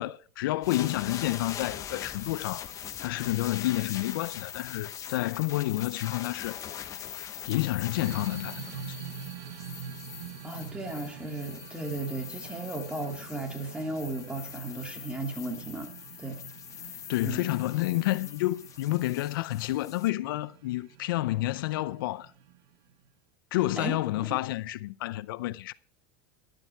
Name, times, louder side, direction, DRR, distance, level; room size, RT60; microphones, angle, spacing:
voice 1, 0.0-2.7 3.0-6.6 7.5-9.0 17.1-22.3 23.5-25.7, left 17 dB, 85° left, 0.6 m, -29 dB
sound 1, 0.6-20.1, left 9 dB, 30° left, 1.2 m, -42 dB
sound 2, 7.9-23.0, right 8 dB, 65° right, 2.2 m, -46 dB
voice 2, 10.4-15.9 16.2-16.4 17.2-17.5 23.8-24.0, right 2 dB, 10° right, 2.6 m, -35 dB
12.5 x 12.0 x 4.6 m
supercardioid pair, 145°, 11 cm